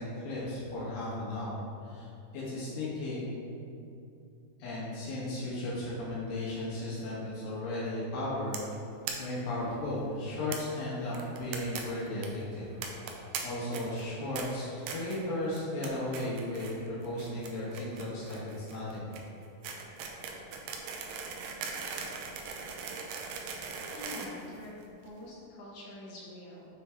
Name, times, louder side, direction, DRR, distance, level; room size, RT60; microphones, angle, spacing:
voice 1, 0.0-2.1 2.3-3.3 4.6-8.6 9.2-12.8 13.4-19.0, left 1 dB, 85° left, -7 dB, 3.1 m, -35 dB
sound 1, 8.5-8.7 9.1-9.2 9.4-9.5 9.7-9.8 10.5-10.6 11.1-11.8 12.1-12.3 12.8-13.4 13.7-14.0 14.4-14.5 14.9-15.2 15.5-15.9 16.1-16.7 17.0-25.1, right 6 dB, 85° right, 2.3 m, -39 dB
voice 2, 23.3-24.7 25.0-26.7, left 1 dB, 70° left, -8 dB, 2.8 m, -46 dB
7.1 x 3.6 x 4.4 m, 2.7 s
omnidirectional pair, 3.9 m